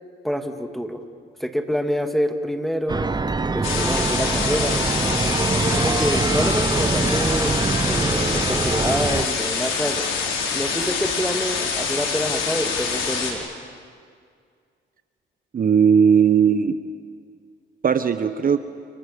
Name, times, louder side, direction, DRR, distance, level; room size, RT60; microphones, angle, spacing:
voice 1, 0.2-1.0 1.4-3.0 3.5-4.8 5.5-7.5 7.9-10.1 10.5-13.5, equal, ahead, 6 dB, 2.5 m, -26 dB
sound 1, 2.9-9.3, right 3 dB, 20° right, 1.0 m, -23 dB
sound 2, 3.6-13.3, left 5 dB, 80° left, 5.1 m, -25 dB
voice 2, 15.5-16.8 17.8-18.6, right 7 dB, 45° right, 10 dB, 1.2 m, -17 dB
29.5 x 29.0 x 7.0 m, 2.1 s
cardioid pair, 90°, 20 cm